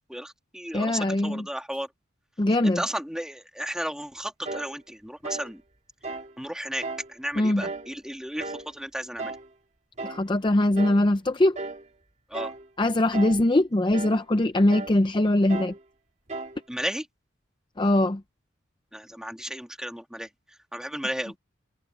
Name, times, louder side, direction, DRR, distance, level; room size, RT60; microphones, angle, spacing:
voice 1, 0.1-1.9 2.6-5.6 6.4-9.4 12.3-12.5 16.7-17.1 18.9-20.3 20.7-21.3, equal, 5° right, 2.5 m, -34 dB
voice 2, 0.7-1.4 2.4-2.8 7.4-7.6 10.0-11.6 12.8-15.7 17.8-18.2, left 1 dB, 25° left, 0.6 m, -22 dB
sound 1, 4.4-4.7 5.2-5.5 6.0-6.3 6.8-7.1 7.6-7.9 8.4-8.7 9.2-9.5 10.0-10.3 10.8-11.1 11.6-11.9 12.3-12.7 13.1-13.5 13.9-14.2 14.7-15.0 15.5-15.8 16.3-16.6, right 3 dB, 35° right, 2.2 m, -35 dB
head